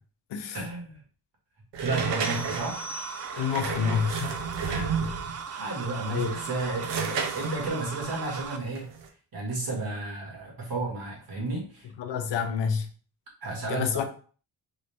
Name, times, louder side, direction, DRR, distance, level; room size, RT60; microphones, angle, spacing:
voice 1, 0.5-1.0 1.8-2.8 4.6-4.9 5.2-8.9 9.3-11.9 13.4-14.0, right 2 dB, 55° right, 1.9 m, -33 dB
sound 1, 1.7-5.4 6.1-9.1, right 5 dB, 85° right, 0.8 m, -32 dB
sound 2, 1.9-8.6, right 6 dB, 40° right, 0.5 m, -38 dB
sound 3, 2.2-3.7, left 1 dB, 40° left, 1.3 m, -42 dB
voice 2, 3.4-4.4 5.0-5.1 6.1-6.3 12.0-12.9 13.7-14.0, left 7 dB, 85° left, 0.7 m, -28 dB
3.8 x 2.6 x 3.4 m
cardioid pair, 105°, 41 cm